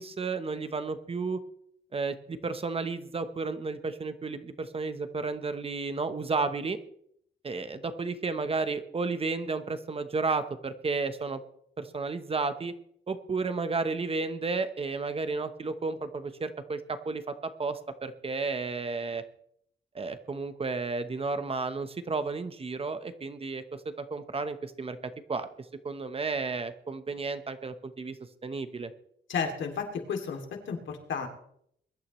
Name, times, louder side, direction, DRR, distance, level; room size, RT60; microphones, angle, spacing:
voice 1, 0.0-1.4 1.9-6.8 7.4-11.4 11.8-12.7 13.1-19.2 19.9-25.0 25.3-25.5 25.8-28.2 28.4-28.9, right 4 dB, 30° right, 10 dB, 0.9 m, -32 dB
voice 2, 29.3-31.3, left 6 dB, 85° left, 3 dB, 2.6 m, -33 dB
22.5 x 12.0 x 3.1 m, 0.69 s
wide cardioid pair, 150°, 19 cm